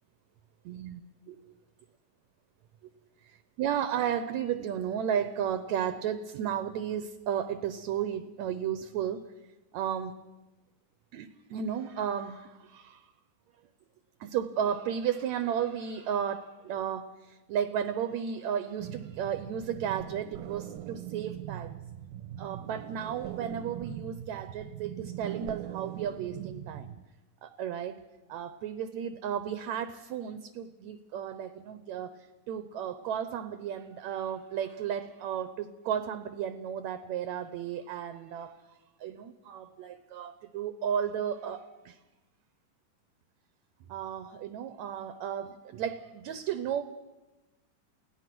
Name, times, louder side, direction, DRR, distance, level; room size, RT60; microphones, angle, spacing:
voice 1, 0.7-1.0 1.3-1.4 3.2-9.3 9.7-10.2 11.1-13.1 14.2-21.8 22.4-26.9 27.4-28.0 28.3-38.6 39.0-42.0 43.9-46.8, right 9 dB, 70° right, 12 dB, 1.9 m, -34 dB
sound 1, 18.8-27.0, right 12 dB, 85° right, 2.6 m, -41 dB
29.0 x 18.0 x 6.1 m, 1.1 s
omnidirectional pair, 3.9 m